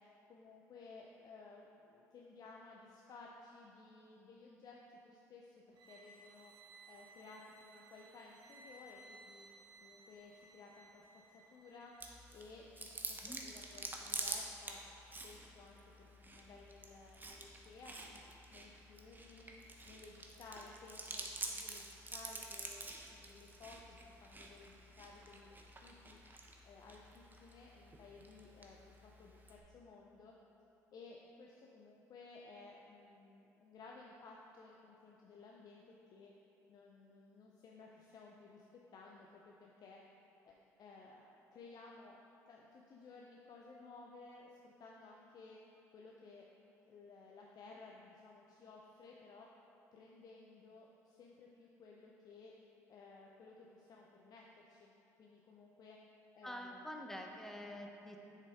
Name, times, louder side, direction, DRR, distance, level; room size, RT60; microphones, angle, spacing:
voice 1, 0.3-6.5 6.9-9.5 9.8-11.1 11.3-11.9 12.3-14.8 15.2-18.2 18.5-19.5 19.8-26.2 26.6-30.4 30.9-35.8 36.1-36.3 36.7-38.7 38.9-40.0 40.5-42.2 42.5-45.6 45.9-46.4 46.9-49.5 49.9-52.5 52.9-54.9 55.2-56.0 56.3-57.0, left 3 dB, 55° left, -1 dB, 0.6 m, -57 dB
sound 1, 5.7-12.1, right 2 dB, 60° right, 0.9 m, -60 dB
Chewing mastication, 12.0-29.6, right 2 dB, 25° right, 0.9 m, -48 dB
voice 2, 56.4-58.2, left 1 dB, 5° left, 2 dB, 0.8 m, -47 dB
7.1 x 5.5 x 3.6 m, 3.0 s
hypercardioid pair, 60°, 8 cm